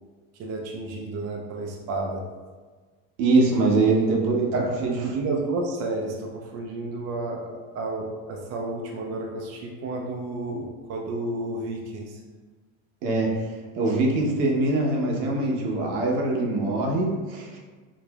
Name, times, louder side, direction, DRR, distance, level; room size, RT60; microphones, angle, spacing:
voice 1, 0.3-2.2 4.5-12.2, right 2 dB, 40° right, 0 dB, 0.5 m, -31 dB
voice 2, 3.2-4.9 13.0-17.6, right 2 dB, 75° right, 0 dB, 0.9 m, -23 dB
4.9 x 2.5 x 2.3 m, 1.4 s
supercardioid pair, 125°, 39 cm